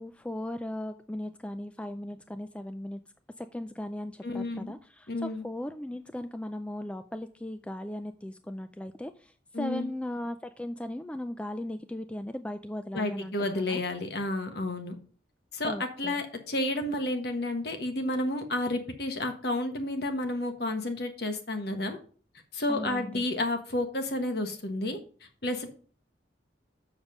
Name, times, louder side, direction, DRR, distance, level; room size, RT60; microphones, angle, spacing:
voice 1, 0.0-3.0 3.4-13.8 15.7-16.2 22.7-23.2, left 1 dB, 5° left, 9 dB, 0.3 m, -37 dB
voice 2, 4.2-4.7 5.1-5.4 9.5-9.9 12.9-14.9 15.5-22.0 22.5-25.0 25.4-25.7, left 1 dB, 55° left, 6 dB, 1.4 m, -31 dB
7.1 x 6.5 x 4.9 m, 0.42 s
head